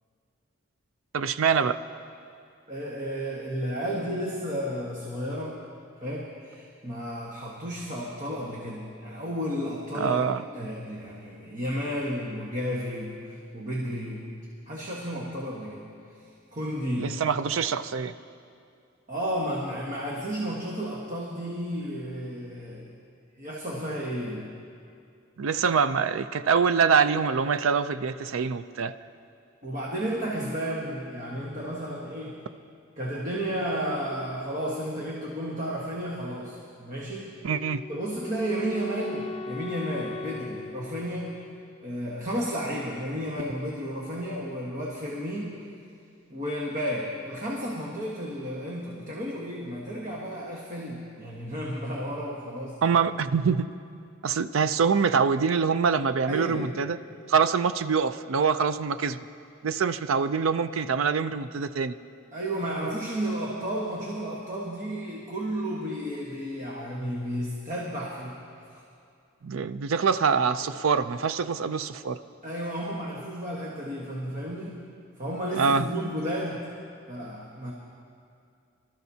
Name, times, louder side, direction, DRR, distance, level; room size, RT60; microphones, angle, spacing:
voice 1, 1.1-1.8 9.9-10.4 17.0-18.1 25.4-28.9 37.4-37.8 52.8-53.7 54.2-57.0 57.3-59.2 59.6-62.0 69.4-72.2 75.5-75.9, right 6 dB, 80° right, 13 dB, 0.4 m, -24 dB
voice 2, 2.7-5.6 6.0-10.3 10.5-14.3 14.7-15.8 16.5-17.2 19.1-22.9 23.4-24.5 29.6-32.4 33.0-37.3 37.9-41.4 41.8-45.6 46.3-52.8 56.3-56.7 62.3-68.4 68.7-68.8 72.4-74.8 75.2-76.6 77.1-77.7, equal, 40° right, -4 dB, 1.4 m, -32 dB
Wind instrument woodwind instrument, 37.5-42.5, left 3 dB, 30° left, 0.3 m, -40 dB
24.0 x 13.0 x 2.8 m, 2.5 s
head